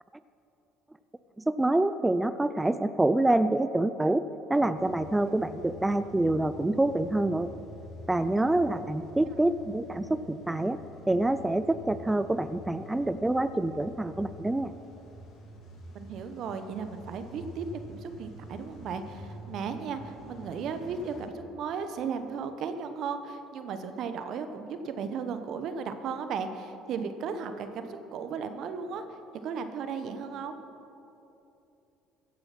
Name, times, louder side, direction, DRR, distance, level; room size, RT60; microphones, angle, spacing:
voice 1, 1.5-4.2 4.5-7.5 8.1-10.8 11.1-14.7, right 2 dB, 10° right, 12 dB, 0.4 m, -26 dB
Car / Engine starting / Idling, 4.7-21.3, left 1 dB, 60° left, 2.1 m, -47 dB
voice 2, 15.9-30.6, right 5 dB, 60° right, 8 dB, 1.0 m, -35 dB
16.0 x 7.6 x 6.0 m, 2.9 s
supercardioid pair, 75°, 0 cm